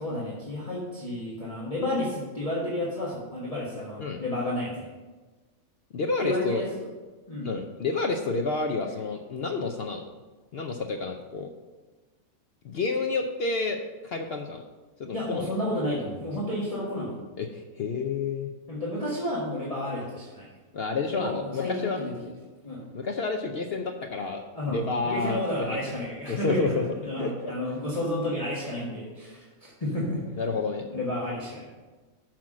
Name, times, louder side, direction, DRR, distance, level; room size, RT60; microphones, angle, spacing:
voice 1, 0.0-4.9 6.2-6.7 7.3-7.5 15.1-17.1 18.7-20.5 21.1-22.1 22.6-22.8 24.5-30.2 30.9-31.7, left 1 dB, 25° left, -6 dB, 1.4 m, -31 dB
voice 2, 5.9-6.6 7.4-10.0 10.5-11.5 12.6-14.6 15.0-15.5 17.4-18.5 20.7-22.0 22.9-26.8 27.2-27.5 30.4-30.9, left 4 dB, 65° left, 3 dB, 0.6 m, -30 dB
6.2 x 5.8 x 6.1 m, 1.3 s
omnidirectional pair, 1.6 m